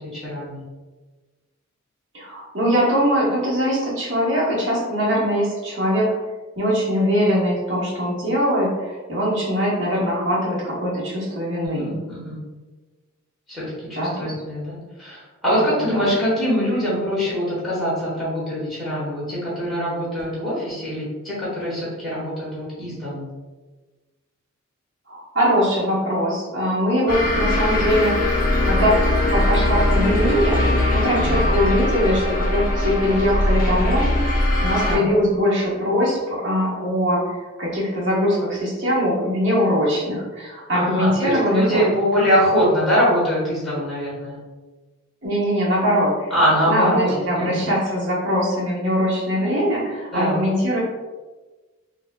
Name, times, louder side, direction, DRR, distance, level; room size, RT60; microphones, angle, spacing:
voice 1, 0.1-0.6 11.6-12.4 13.5-13.7 14.0-23.3 31.1-31.4 34.8-35.0 40.7-44.4 46.3-47.7 50.1-50.4, equal, ahead, -10 dB, 1.1 m, -23 dB
voice 2, 2.1-6.1 6.6-12.0 14.0-14.3 15.8-16.1 25.1-28.3 28.6-28.9 29.3-41.8 45.2-46.3 46.7-50.8, equal, 60° right, -5 dB, 1.1 m, -22 dB
sound 1, 27.1-35.0, left 1 dB, 40° left, 0.6 m, -20 dB
4.3 x 2.3 x 2.2 m, 1.3 s
head